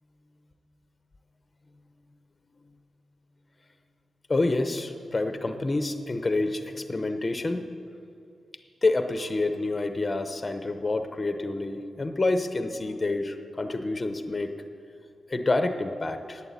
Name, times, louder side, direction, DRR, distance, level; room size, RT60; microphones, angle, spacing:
voice 1, 4.3-7.6 8.8-14.5 15.3-16.4, left 2 dB, 20° left, 8 dB, 0.7 m, -28 dB
11.5 x 9.0 x 8.3 m, 2.4 s
wide cardioid pair, 180°, 0 cm